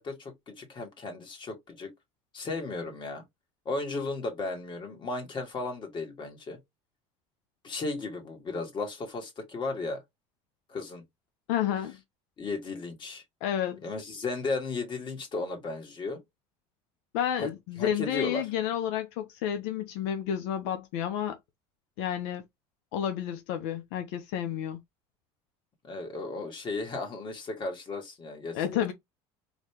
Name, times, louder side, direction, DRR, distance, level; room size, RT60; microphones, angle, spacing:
voice 1, 0.0-1.9 2.3-3.2 3.7-6.6 7.6-10.0 10.7-11.0 12.4-13.2 13.8-16.2 17.4-17.5 17.8-18.5 25.8-28.9, left 3 dB, 35° left, 2.2 m, -35 dB
voice 2, 11.5-12.0 13.4-13.8 17.1-21.4 22.0-22.4 22.9-24.8 28.5-28.9, left 10 dB, 80° left, 0.8 m, -30 dB
4.0 x 2.9 x 3.4 m
supercardioid pair, 120°, 14 cm